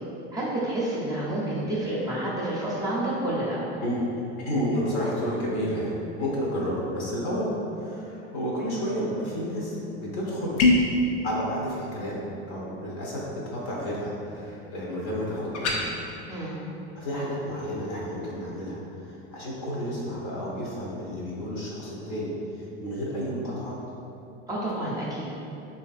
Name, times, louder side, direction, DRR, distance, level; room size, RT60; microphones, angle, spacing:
voice 1, 0.3-3.6 16.3-16.6 24.5-25.3, right 1 dB, 10° right, -8 dB, 0.6 m, -29 dB
voice 2, 4.5-10.6 11.2-15.8 17.0-23.8, equal, 60° left, -4 dB, 0.9 m, -31 dB
sound 1, 10.6-11.0 15.5-15.8, left 2 dB, 85° left, 0.5 m, -20 dB
3.2 x 2.6 x 2.3 m, 2.8 s
hypercardioid pair, 100°, 34 cm